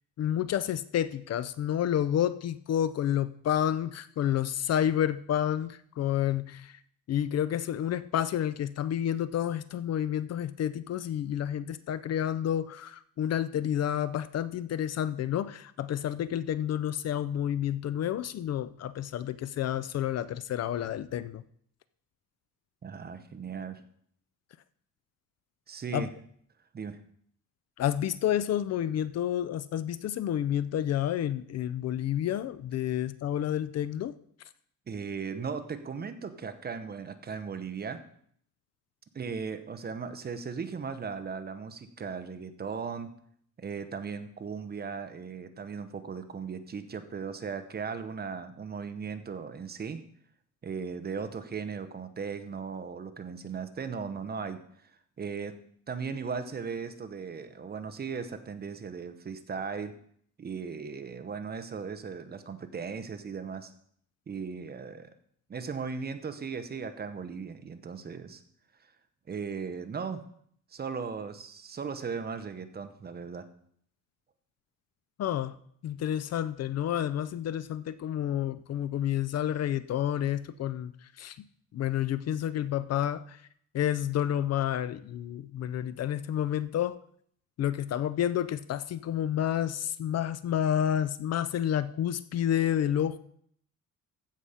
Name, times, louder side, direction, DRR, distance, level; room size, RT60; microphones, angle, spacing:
voice 1, 0.2-6.8 7.1-21.4 25.9-26.1 27.8-34.2 75.2-75.6 75.8-81.4 81.7-83.4 83.7-87.0 87.6-93.2, left 10 dB, 50° left, 14 dB, 0.5 m, -30 dB
voice 2, 22.8-23.8 25.7-26.1 26.7-27.0 34.9-38.0 39.1-43.1 43.6-50.0 50.6-54.6 55.2-55.5 55.9-59.9 60.4-63.7 64.3-65.1 65.5-68.4 69.3-70.2 70.7-73.4, right 5 dB, 30° right, 9 dB, 0.9 m, -37 dB
15.0 x 5.0 x 5.7 m, 0.64 s
cardioid pair, 140°, 32 cm